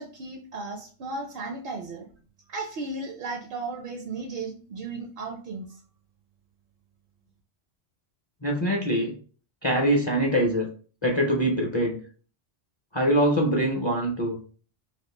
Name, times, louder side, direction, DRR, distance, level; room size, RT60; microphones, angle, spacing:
voice 1, 0.0-2.1 2.5-5.7, right 3 dB, 65° right, 2 dB, 0.7 m, -35 dB
voice 2, 8.4-9.2 9.6-10.7 11.0-12.0 12.9-14.4, right 1 dB, 35° left, -1 dB, 0.5 m, -23 dB
2.9 x 2.5 x 3.2 m, 0.41 s
omnidirectional pair, 1.1 m